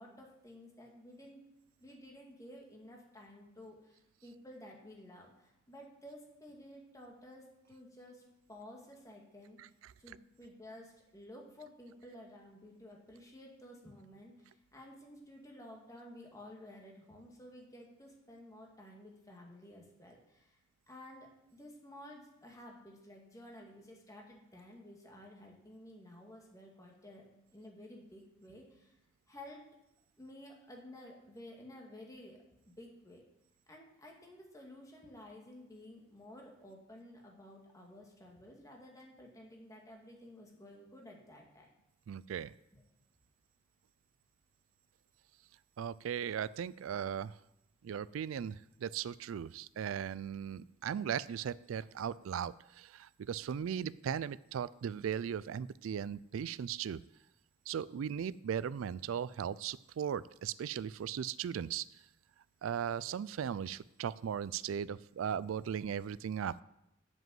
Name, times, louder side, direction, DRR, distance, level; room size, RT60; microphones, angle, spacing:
voice 1, 0.0-1.4 1.8-8.2 8.5-9.6 10.0-20.6 20.9-29.0 29.3-29.6 30.2-32.4 32.6-33.2 33.7-41.7 42.7-42.8, left 1 dB, 15° left, 0 dB, 2.0 m, -53 dB
voice 2, 42.1-42.5 45.8-47.4 47.8-57.0 57.7-61.9 62.6-66.6, right 8 dB, 75° right, 19 dB, 0.3 m, -37 dB
7.9 x 7.6 x 7.6 m, 0.86 s
head